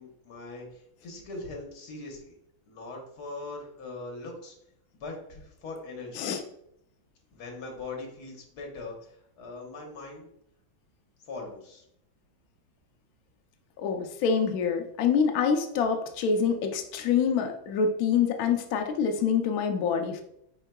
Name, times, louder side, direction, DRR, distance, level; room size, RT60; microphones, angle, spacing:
voice 1, 0.0-2.3 2.7-4.6 4.9-6.3 7.3-10.3 11.2-11.8, left 3 dB, 55° left, 0 dB, 1.5 m, -41 dB
voice 2, 13.8-20.2, left 6 dB, 85° left, 4 dB, 0.8 m, -26 dB
4.6 x 4.5 x 2.2 m, 0.75 s
omnidirectional pair, 2.2 m